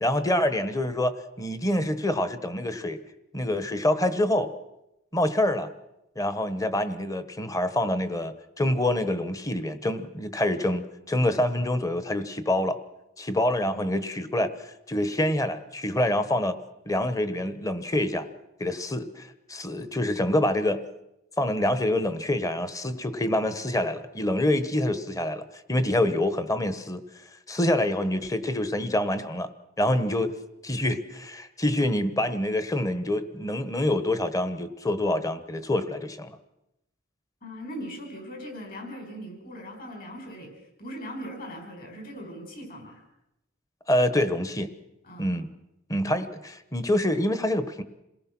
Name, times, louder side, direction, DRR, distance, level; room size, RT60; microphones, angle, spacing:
voice 1, 0.0-3.0 3.3-4.5 5.1-5.7 6.2-12.8 13.2-16.6 16.9-18.3 18.6-20.8 21.4-27.0 27.5-29.5 29.8-30.3 30.6-36.4 43.9-44.7 45.2-45.5 45.9-47.8, left 1 dB, 15° left, 11 dB, 1.2 m, -26 dB
voice 2, 37.4-43.0 45.0-45.5, equal, 45° left, 4 dB, 5.2 m, -40 dB
27.5 x 18.5 x 6.1 m, 0.87 s
head